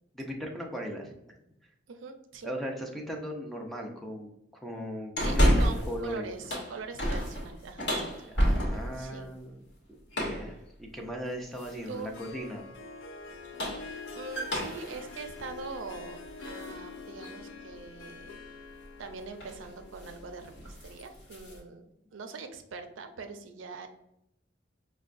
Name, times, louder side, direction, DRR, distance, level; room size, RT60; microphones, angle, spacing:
voice 1, 0.1-1.1 2.4-4.3 4.6-6.3 8.3-9.6 10.2-12.6, equal, ahead, 1 dB, 0.5 m, -37 dB
voice 2, 1.9-2.5 5.2-8.3 8.9-9.3 11.9-12.1 13.8-18.3 19.0-21.8 22.1-23.9, right 4 dB, 90° right, 6 dB, 0.4 m, -43 dB
sound 1, 5.2-6.0 6.3-9.0 10.1-10.5 11.6-12.0 13.3-16.7 17.2-17.3 18.8-19.1 19.4-19.6 20.0-20.2 20.5-21.6, equal, 60° left, 1.0 m, -30 dB
Harp, 11.9-20.9, left 4 dB, 80° left, 0.4 m, -46 dB
5.4 x 2.2 x 2.4 m, 0.80 s
head